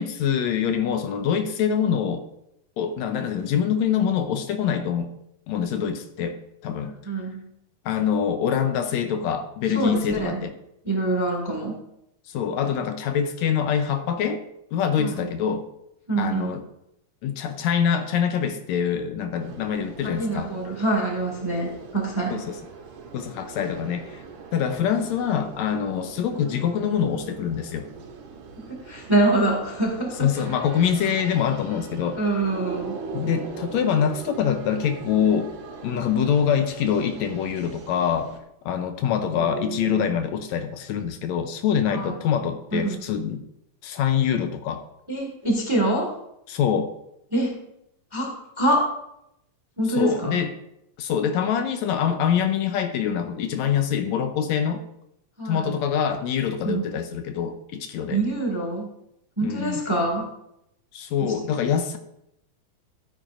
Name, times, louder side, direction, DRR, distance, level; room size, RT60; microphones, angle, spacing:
voice 1, 0.0-2.2 2.8-5.1 5.5-7.0 7.9-10.5 12.3-14.4 14.7-15.7 16.2-16.6 17.2-20.5 22.3-22.6 23.1-24.2 24.5-27.9 30.2-32.2 33.1-35.5 35.8-38.3 38.7-43.4 43.8-44.8 46.5-46.9 50.0-50.5 51.0-54.8 55.5-58.2 59.4-59.8 60.9-62.0, left 8 dB, 80° left, 7 dB, 1.9 m, -25 dB
voice 2, 7.0-7.5 9.7-10.4 10.8-11.8 15.0-15.3 16.1-16.6 20.0-22.4 28.7-30.3 32.1-33.0 39.3-40.0 41.9-42.1 42.7-43.0 45.1-46.1 47.3-47.5 48.1-48.9 49.8-50.4 55.4-55.8 56.6-56.9 58.1-58.9 59.4-60.3 61.2-61.3, right 2 dB, 10° right, 0 dB, 1.0 m, -25 dB
sound 1, 19.4-38.4, right 5 dB, 90° right, 2.7 m, -40 dB
14.0 x 9.0 x 2.5 m, 0.80 s
omnidirectional pair, 3.3 m